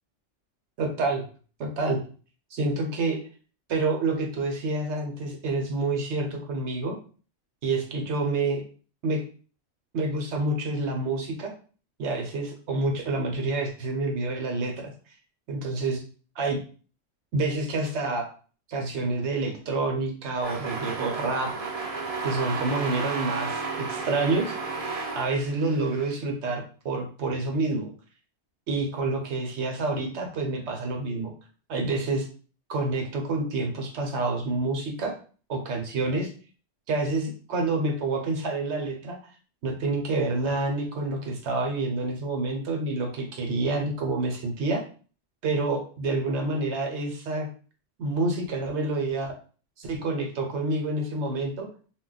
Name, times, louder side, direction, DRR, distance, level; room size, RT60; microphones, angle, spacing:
voice 1, 0.8-1.2 1.6-2.0 2.5-3.2 3.7-7.0 7.6-8.6 9.0-9.2 9.9-11.5 12.0-14.9 15.5-16.0 16.4-16.6 17.3-18.3 18.7-21.5 22.2-24.6 25.1-27.9 28.7-31.3 31.7-32.3 32.7-35.1 35.5-36.3 36.9-39.2 39.6-44.8 45.4-47.5 48.0-49.3 49.8-51.7, right 2 dB, 70° right, 2 dB, 1.0 m, -28 dB
sound 1, 20.4-26.1, right 4 dB, 45° right, 0.5 m, -33 dB
2.2 x 2.1 x 3.8 m, 0.40 s
omnidirectional pair, 1.3 m